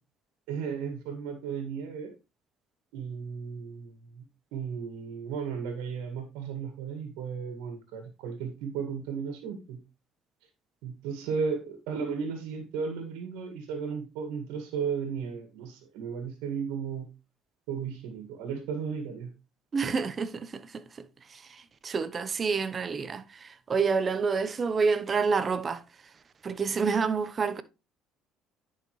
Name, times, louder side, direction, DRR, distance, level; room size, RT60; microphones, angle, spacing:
voice 1, 0.5-2.1 2.9-4.2 4.5-9.8 10.8-17.1 17.7-19.3, right 6 dB, 80° right, 2.0 m, -35 dB
voice 2, 19.7-20.8 21.3-25.8 26.4-27.6, right 5 dB, 35° right, 1.0 m, -28 dB
10.5 x 5.7 x 3.2 m
supercardioid pair, 75°, 0 cm